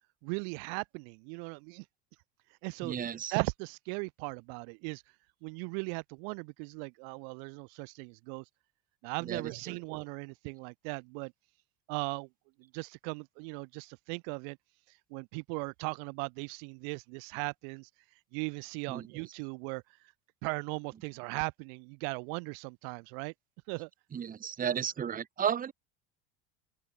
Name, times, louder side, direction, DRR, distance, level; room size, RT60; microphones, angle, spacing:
voice 1, 0.2-1.8 2.6-2.9 3.3-5.0 5.4-8.4 9.0-11.3 11.9-12.3 12.7-14.6 15.1-17.9 18.3-19.8 20.4-23.3 23.7-23.9, right 40 dB or more, 70° right, 0.9 m, -38 dB
voice 2, 2.8-3.4 9.2-9.8 18.9-19.1 24.1-25.7, right 8 dB, 25° right, 1.1 m, -34 dB
supercardioid pair, 95°, 31 cm